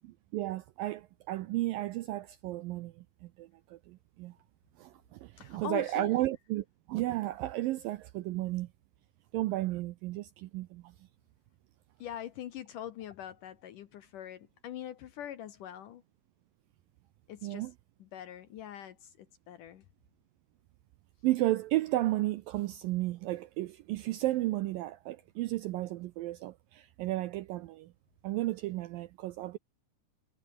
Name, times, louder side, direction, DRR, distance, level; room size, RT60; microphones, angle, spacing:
voice 1, 0.0-4.3 4.8-8.7 9.3-10.9 17.4-17.7 21.2-27.9 28.2-29.6, right 16 dB, 80° right, 2.1 m, -33 dB
voice 2, 5.4-6.2 12.0-16.0 17.3-17.7 18.0-19.8, left 11 dB, 70° left, 2.2 m, -43 dB
omnidirectional pair, 4.8 m